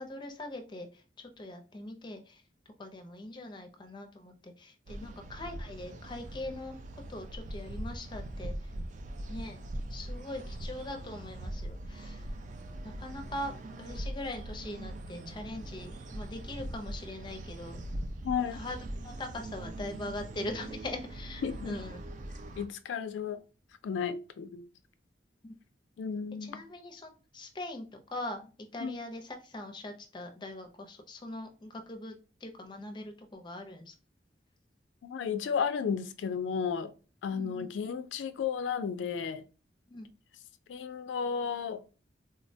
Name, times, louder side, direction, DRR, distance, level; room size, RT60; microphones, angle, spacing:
voice 1, 0.0-2.4 2.8-6.8 7.1-8.5 9.3-9.6 9.9-12.3 12.8-17.8 18.4-18.8 19.0-22.0 25.4-25.5 26.4-32.2 32.4-33.9 37.3-37.7 39.9-40.1, left 1 dB, 25° left, 0.5 m, -42 dB
sound 1, 4.9-22.7, right 1 dB, 40° right, 0.3 m, -41 dB
voice 2, 18.2-18.6 21.4-21.8 22.6-23.4 23.8-24.7 26.0-26.6 28.8-28.9 35.0-36.9 37.2-39.4 40.7-41.8, left 6 dB, 85° left, 0.3 m, -33 dB
3.7 x 2.1 x 2.7 m
head